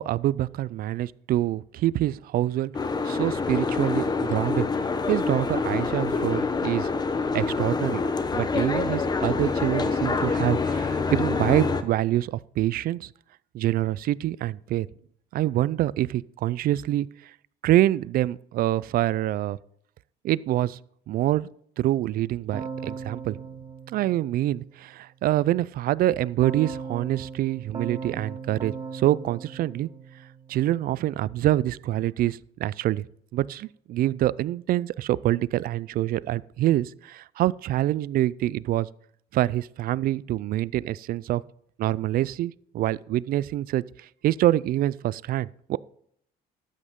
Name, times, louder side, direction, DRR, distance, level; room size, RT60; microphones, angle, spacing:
voice 1, 0.0-2.7 3.0-4.7 5.1-6.9 7.3-8.0 8.3-13.1 13.5-14.9 15.3-17.1 17.6-19.6 20.2-20.8 21.1-21.5 21.8-23.4 23.9-29.9 30.5-33.1 33.3-38.9 39.3-41.4 41.8-43.8 44.2-45.8, right 14 dB, 60° right, 0.4 m, -25 dB
Boat Water vehicle, 2.7-11.8, left 4 dB, 25° left, 0.9 m, -26 dB
Keyboard (musical), 22.5-24.8 26.4-30.7, right 5 dB, 25° right, 0.9 m, -38 dB
13.0 x 8.6 x 3.7 m
cardioid pair, 110°, 17 cm